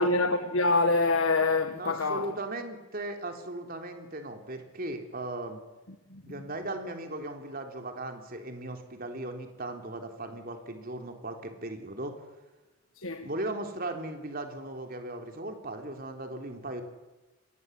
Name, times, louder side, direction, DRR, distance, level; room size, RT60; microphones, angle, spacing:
voice 1, 0.0-2.3 6.1-6.2 13.0-13.3, left 3 dB, 65° left, 1.5 m, -25 dB
voice 2, 1.7-5.6 6.3-12.1 13.2-16.8, right 2 dB, 40° right, 3.7 m, -37 dB
29.0 x 22.5 x 8.3 m
head